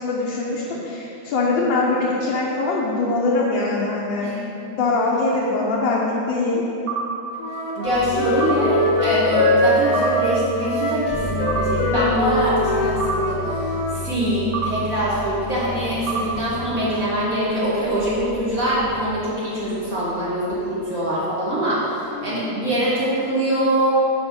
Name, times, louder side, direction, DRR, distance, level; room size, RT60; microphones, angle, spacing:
voice 1, 0.0-4.3 4.7-6.6 22.1-22.4, left 3 dB, 75° left, -5 dB, 1.6 m, -22 dB
sound 1, 6.9-7.1 8.4-8.6 9.9-10.1 11.5-11.7 13.0-13.2 14.5-14.7 16.1-16.3, right 6 dB, 65° right, 1.6 m, -26 dB
Wind instrument woodwind instrument, 7.4-14.0, left 1 dB, 60° left, 1.4 m, -23 dB
voice 2, 7.8-23.9, equal, 45° right, -10 dB, 2.0 m, -23 dB
sound 2, 7.9-19.6 20.5-20.9, equal, 15° left, 0.8 m, -33 dB
6.4 x 5.1 x 6.2 m, 2.9 s
omnidirectional pair, 2.0 m